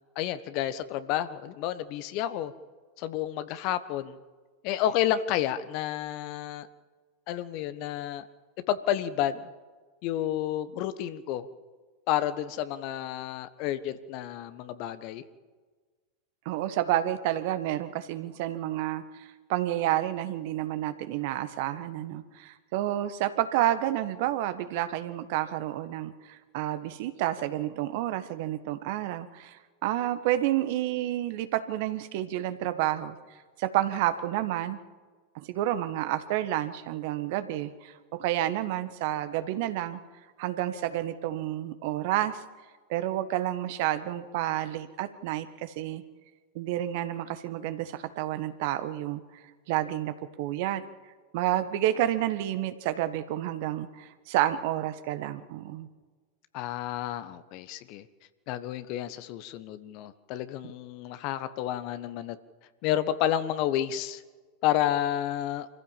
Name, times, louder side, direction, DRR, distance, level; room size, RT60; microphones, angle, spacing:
voice 1, 0.1-2.5 3.0-4.2 4.6-6.7 7.3-8.3 8.7-9.5 10.0-11.4 12.1-15.2 56.5-58.1 58.5-62.4 62.8-64.2 64.6-65.7, left 11 dB, 50° left, 13 dB, 1.3 m, -30 dB
voice 2, 16.4-33.2 33.6-34.8 35.3-37.9 38.2-40.0 40.4-42.4 42.9-46.0 46.5-49.2 49.7-50.8 51.3-55.9, right 13 dB, 55° right, 11 dB, 1.4 m, -30 dB
25.5 x 15.0 x 7.4 m, 1.4 s
figure-of-eight pair, 90°, 0 cm